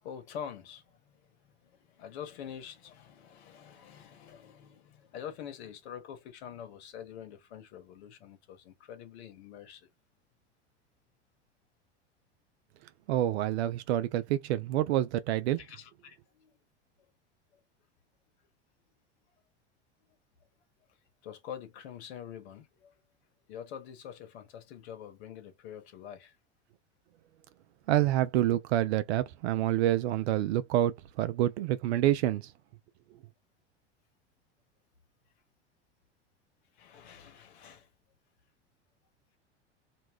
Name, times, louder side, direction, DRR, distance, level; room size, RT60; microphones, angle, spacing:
voice 1, 0.0-9.9 15.6-16.5 21.2-22.9 23.5-26.3 36.8-37.9, left 9 dB, 65° left, 1.1 m, -46 dB
voice 2, 13.1-15.6 27.9-32.5, right 13 dB, 70° right, 0.5 m, -27 dB
2.6 x 2.1 x 3.2 m
hypercardioid pair, 90°, 35 cm